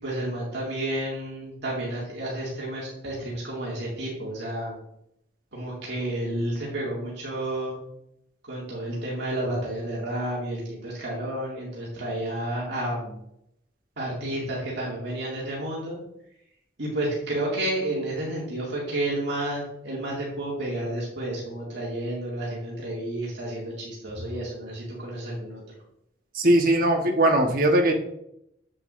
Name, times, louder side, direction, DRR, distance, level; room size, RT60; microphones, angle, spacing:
voice 1, 0.0-4.8 5.5-7.8 8.5-13.2 14.0-16.0 16.8-25.6, right 1 dB, 60° right, -6 dB, 2.1 m, -31 dB
voice 2, 26.3-27.9, right 1 dB, 45° right, 2 dB, 1.1 m, -20 dB
7.7 x 7.5 x 2.5 m, 0.78 s
head